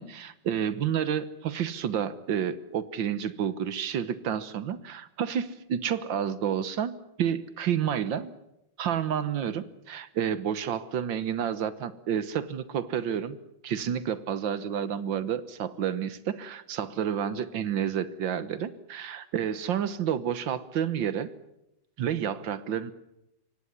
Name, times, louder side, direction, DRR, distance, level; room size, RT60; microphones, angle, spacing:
voice 1, 0.0-8.3 8.8-13.4 13.6-21.3 22.0-22.9, right 9 dB, 70° right, 15 dB, 1.7 m, -30 dB
23.5 x 18.0 x 9.6 m, 0.84 s
omnidirectional pair, 2.2 m